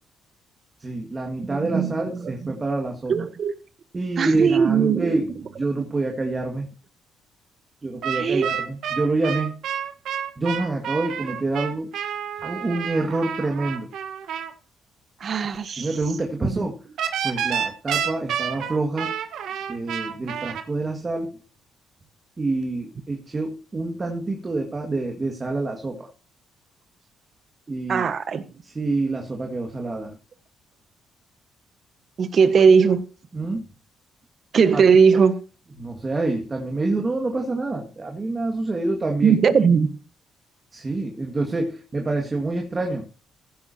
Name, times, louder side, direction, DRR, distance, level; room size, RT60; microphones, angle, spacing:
voice 1, 0.8-3.1 3.9-6.7 7.8-9.5 10.4-11.9 12.4-13.9 15.8-16.8 17.2-19.1 19.7-21.4 22.4-26.1 27.7-28.1 28.6-30.2 33.3-33.7 34.7-34.8 35.8-39.4 40.7-43.1, right 2 dB, 30° right, 2.0 m, -27 dB
voice 2, 1.4-1.9 2.2-2.3 3.1-3.5 4.2-5.2 5.8-5.9 8.1-8.5 15.2-15.9 16.4-16.7 27.9-28.5 32.2-33.0 34.5-35.3 39.2-39.9, right 6 dB, 50° right, 1.3 m, -19 dB
sound 1, 8.0-14.5 17.0-20.6, right 8 dB, 80° right, 1.3 m, -29 dB
16.0 x 11.0 x 2.8 m
cardioid pair, 90°, 0 cm